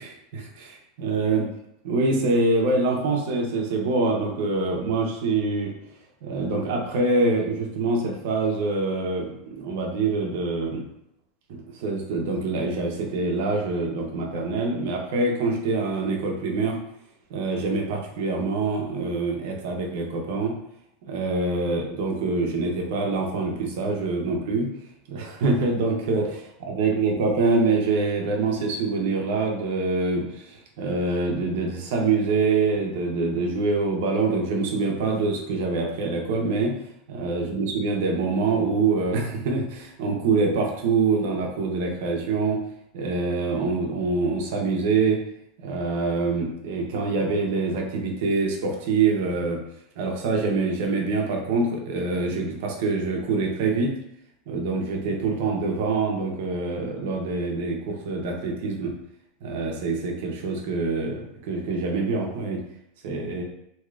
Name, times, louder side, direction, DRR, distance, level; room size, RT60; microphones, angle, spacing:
voice 1, 0.0-1.5 1.8-5.7 6.2-10.8 11.5-16.8 17.3-20.6 21.1-24.7 25.1-36.7 37.1-42.6 42.9-45.2 45.6-49.6 50.0-53.9 54.5-58.9 59.4-62.6 63.0-63.4, right 3 dB, 65° right, 1 dB, 0.7 m, -25 dB
3.2 x 2.8 x 2.4 m, 0.79 s
supercardioid pair, 170°, 0 cm